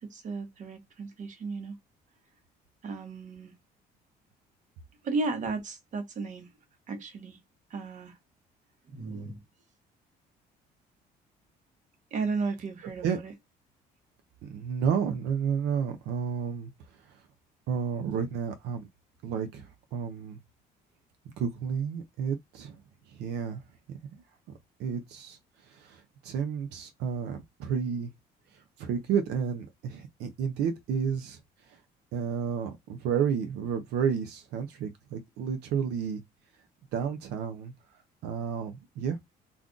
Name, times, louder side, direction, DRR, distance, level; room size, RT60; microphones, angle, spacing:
voice 1, 0.1-1.8 2.8-3.5 5.0-6.5 6.9-7.4 7.7-8.1 8.9-9.4 12.1-13.3, right 4 dB, 45° right, 1.0 m, -34 dB
voice 2, 14.4-16.7 17.7-18.9 19.2-20.4 21.4-22.8 23.1-23.6 23.9-24.0 24.8-25.4 25.7-28.1 28.8-31.4 31.7-31.8 32.1-36.2 36.9-37.7 38.2-39.2, right 7 dB, 85° right, 0.6 m, -31 dB
2.4 x 2.4 x 3.7 m
cardioid pair, 110°, 17 cm